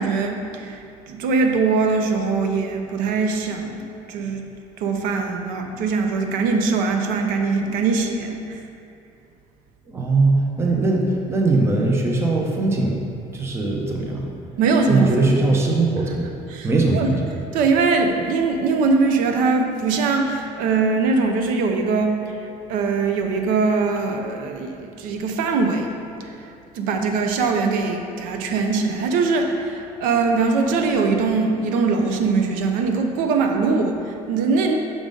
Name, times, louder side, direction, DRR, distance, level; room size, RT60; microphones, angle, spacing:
voice 1, 0.0-4.5 4.8-8.6 14.6-15.3 16.5-17.1 17.5-25.9 26.2-34.8, right 4 dB, 85° right, 4 dB, 0.6 m, -22 dB
voice 2, 9.9-13.0 13.3-14.3 14.9-16.2 16.6-17.2, right 3 dB, 20° right, 0 dB, 0.6 m, -20 dB
6.1 x 3.8 x 5.1 m, 2.5 s
cardioid pair, 175°, 14 cm